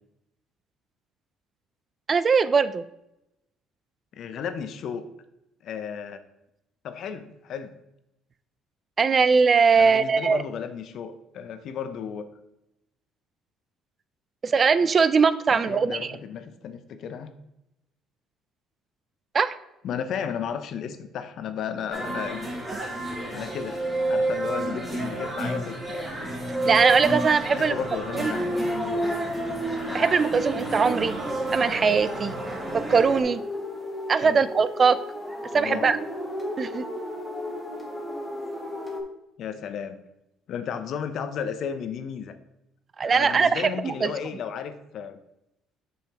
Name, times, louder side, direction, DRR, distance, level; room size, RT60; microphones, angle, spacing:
voice 1, 2.1-2.8 9.0-10.4 14.4-16.0 19.3-19.6 26.7-27.8 28.1-28.3 29.9-31.2 31.5-32.3 32.7-33.4 34.1-35.0 35.5-36.0 36.6-36.8 43.0-44.1, right 5 dB, 35° right, 14 dB, 0.3 m, -21 dB
voice 2, 4.1-5.0 5.6-6.2 6.8-7.7 9.8-12.3 15.5-17.3 19.8-22.5 23.3-23.8 24.1-26.1 27.5-28.4 31.5-31.6 34.2-34.4 35.5-36.0 39.4-40.0 40.5-42.3 43.0-45.2, left 7 dB, 60° left, 10 dB, 0.6 m, -34 dB
sound 1, 21.9-33.2, right 1 dB, 15° right, 2.3 m, -31 dB
sound 2, 28.3-39.0, equal, 5° left, 1.3 m, -33 dB
7.1 x 5.5 x 2.9 m, 0.88 s
cardioid pair, 105°, 0 cm